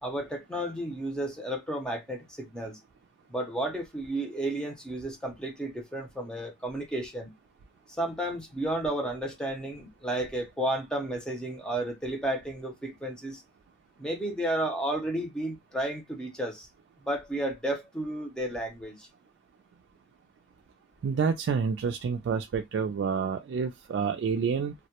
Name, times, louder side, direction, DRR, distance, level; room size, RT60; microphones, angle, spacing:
voice 1, 0.0-2.8 3.3-7.3 8.0-13.4 14.0-16.7 17.0-19.1, right 1 dB, 5° left, 0.6 m, -32 dB
voice 2, 21.0-24.7, right 6 dB, 90° right, 0.3 m, -28 dB
2.2 x 2.1 x 2.8 m
head